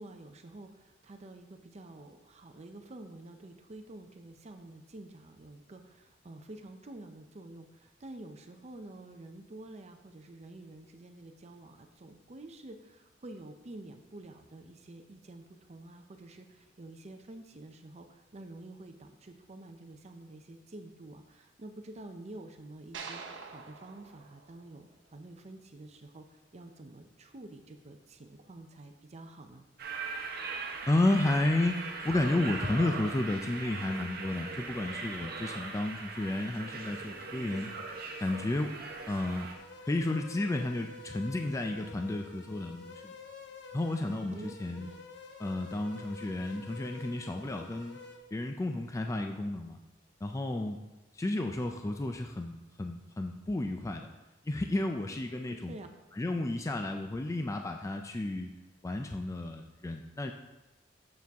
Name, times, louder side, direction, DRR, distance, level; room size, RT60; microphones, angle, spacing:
voice 1, 0.0-15.4 15.7-18.1 18.3-26.3 26.5-29.7 44.1-45.0 55.5-55.9, right 2 dB, 35° right, 6 dB, 0.6 m, -49 dB
sound 1, 22.9-25.3, right 5 dB, 90° right, 0.8 m, -46 dB
sound 2, 29.8-39.5, right 4 dB, 55° right, 1.0 m, -40 dB
voice 2, 30.9-37.7 38.2-38.8 39.1-39.5 39.8-43.1 43.7-44.9 45.4-48.0 48.3-49.8 50.2-50.8 51.1-54.1 54.5-55.8 56.1-58.5 58.8-60.3, left 2 dB, 15° left, 4 dB, 0.4 m, -32 dB
sound 3, 39.5-48.2, left 4 dB, 70° left, 0.9 m, -49 dB
7.5 x 7.0 x 3.5 m, 1.1 s
head